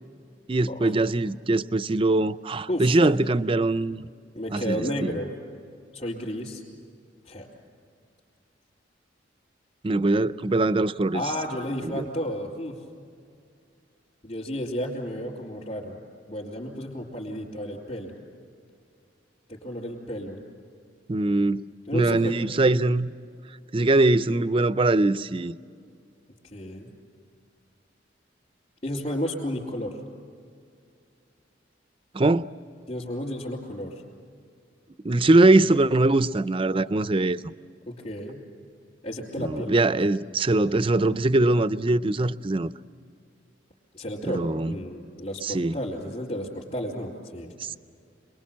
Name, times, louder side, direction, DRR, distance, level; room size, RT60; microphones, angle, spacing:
voice 1, 0.5-4.1 4.5-4.8 9.8-11.2 11.8-12.1 21.1-21.6 21.9-23.1 23.7-25.6 32.1-32.5 35.0-37.4 39.4-42.7 44.3-44.7 45.4-45.8, right 2 dB, 30° right, 0.5 m, -22 dB
voice 2, 2.7-3.1 4.3-5.3 5.9-6.6 7.2-7.5 11.1-12.8 14.2-15.9 16.3-18.1 19.5-20.4 21.9-22.4 26.5-26.9 28.8-30.0 32.9-33.9 37.9-38.4 39.0-39.9 43.9-47.5, equal, 40° left, 4.0 m, -32 dB
27.5 x 21.0 x 7.4 m
head